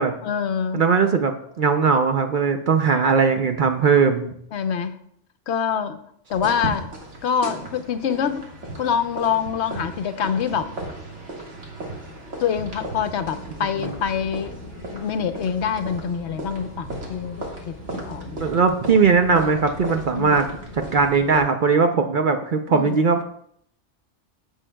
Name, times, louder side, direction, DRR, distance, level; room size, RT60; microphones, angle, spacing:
voice 1, 0.2-0.9 4.5-5.0 5.5-6.0 6.3-6.9 7.2-8.4 8.8-10.7 12.4-14.6 14.9-18.6 20.1-20.4 22.7-23.0, left 7 dB, 70° left, 10 dB, 0.9 m, -25 dB
voice 2, 0.7-4.3 13.8-13.9 18.4-20.5 20.9-23.2, right 5 dB, 55° right, 6 dB, 0.6 m, -19 dB
sound 1, 6.3-21.4, right 2 dB, 75° right, 2.0 m, -36 dB
sound 2, 12.6-21.2, left 1 dB, 40° left, 0.9 m, -42 dB
14.5 x 6.4 x 2.2 m, 0.68 s
omnidirectional pair, 1.2 m